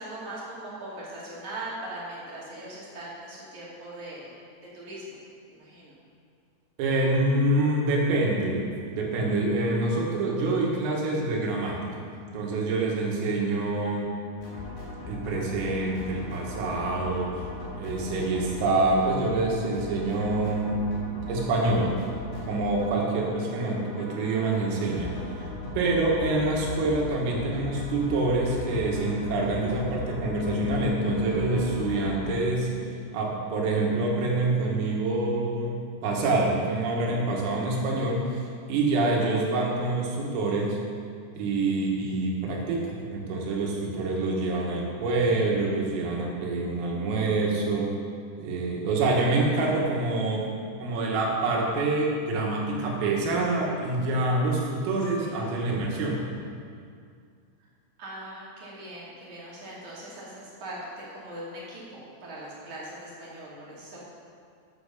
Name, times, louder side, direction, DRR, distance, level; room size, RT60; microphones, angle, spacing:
voice 1, 0.0-4.4 4.7-5.2 5.5-5.9 55.2-55.4 58.0-64.0, right 1 dB, 45° right, -7 dB, 3.2 m, -40 dB
voice 2, 6.8-12.0 12.3-14.1 15.1-17.3 17.8-20.9 21.3-22.0 22.4-25.5 25.8-32.7 33.1-40.8 41.4-47.9 48.4-50.5 50.8-56.2, right 2 dB, 90° right, -2 dB, 4.5 m, -26 dB
sound 1, 14.4-32.4, left 2 dB, 60° left, 5.1 m, -38 dB
Piano, 30.3-36.0, left 7 dB, 85° left, 3.3 m, -39 dB
10.5 x 8.0 x 6.8 m, 2.3 s
omnidirectional pair, 5.8 m